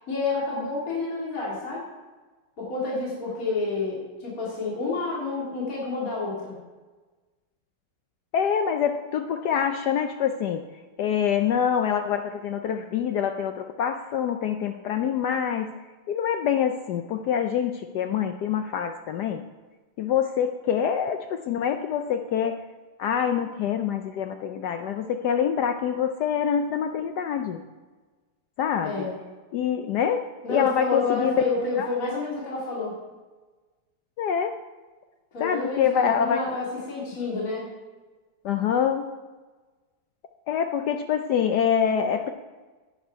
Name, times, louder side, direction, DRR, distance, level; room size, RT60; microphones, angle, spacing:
voice 1, 0.0-1.8 2.6-6.6 28.8-29.1 30.4-33.0 35.3-37.7, left 3 dB, 40° left, -6 dB, 2.9 m, -29 dB
voice 2, 8.3-10.6 11.0-15.7 16.1-19.4 20.0-22.6 23.0-27.6 28.6-29.1 29.5-31.3 31.8-31.9 34.2-34.5 35.4-36.4 38.4-39.0 40.5-42.3, left 8 dB, 80° left, 6 dB, 0.9 m, -25 dB
10.5 x 9.2 x 4.6 m, 1.3 s
omnidirectional pair, 2.4 m